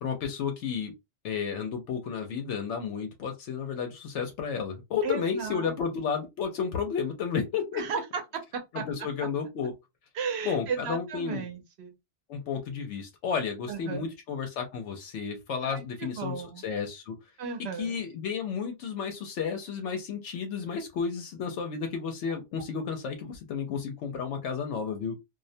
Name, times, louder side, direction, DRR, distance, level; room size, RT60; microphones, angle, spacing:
voice 1, 0.0-0.9 1.2-7.8 8.7-9.7 10.4-11.5 12.3-16.4 16.6-17.2 17.8-25.2, left 6 dB, 80° left, 0.9 m, -32 dB
voice 2, 5.0-5.7 7.7-8.2 8.5-8.8 10.1-11.9 13.7-14.1 15.6-16.6 17.4-18.0, right 6 dB, 70° right, 0.9 m, -35 dB
2.4 x 2.1 x 2.6 m
omnidirectional pair, 1.2 m